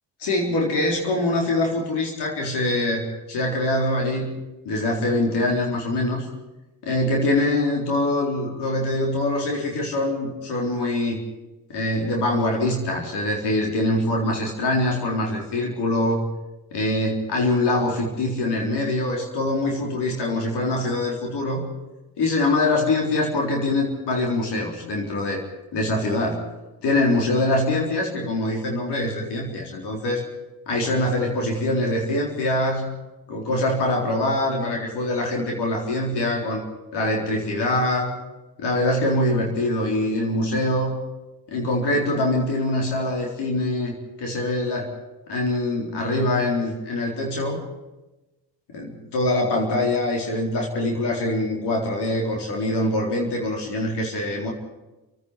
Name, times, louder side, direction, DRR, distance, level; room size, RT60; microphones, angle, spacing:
voice 1, 0.2-4.3 4.7-6.3 6.8-11.2 11.7-16.3 16.7-21.7 22.2-25.4 25.7-26.4 26.8-30.2 30.7-32.9 33.3-36.6 36.9-38.2 38.6-41.0 41.5-44.9 45.3-47.6 48.7-54.5, left 1 dB, 85° left, 0 dB, 4.1 m, -24 dB
29.0 x 9.7 x 10.0 m, 1.1 s
cardioid pair, 60°, 40 cm